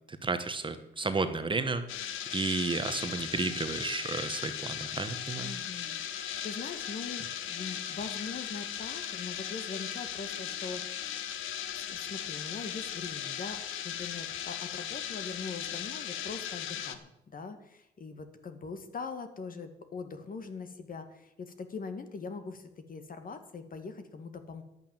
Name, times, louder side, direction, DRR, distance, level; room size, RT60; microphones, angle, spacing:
voice 1, 0.2-5.5, right 3 dB, 25° right, 10 dB, 1.1 m, -32 dB
sound 1, 1.9-17.0, left 10 dB, 80° left, 1.0 m, -37 dB
voice 2, 5.4-11.2 11.7-24.6, left 4 dB, 45° left, 8 dB, 1.8 m, -42 dB
11.0 x 8.7 x 7.5 m, 0.86 s
cardioid pair, 90°, 20 cm